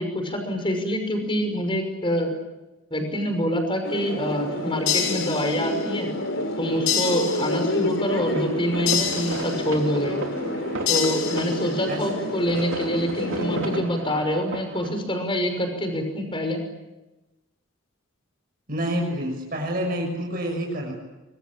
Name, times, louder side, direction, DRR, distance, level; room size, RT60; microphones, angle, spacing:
voice 1, 0.0-2.3 2.9-6.1 6.6-10.2 10.9-16.6, equal, 25° left, 6 dB, 6.0 m, -26 dB
sound 1, 3.8-13.8, left 1 dB, 65° left, 4.1 m, -29 dB
sound 2, 4.9-5.9 6.9-7.9 8.9-9.9 10.9-11.9, left 8 dB, 90° left, 5.8 m, -28 dB
sound 3, 8.1-14.9, right 2 dB, 75° right, 3.8 m, -35 dB
voice 2, 18.7-20.9, equal, 45° right, 0 dB, 6.7 m, -28 dB
25.5 x 25.0 x 8.8 m, 1.0 s
head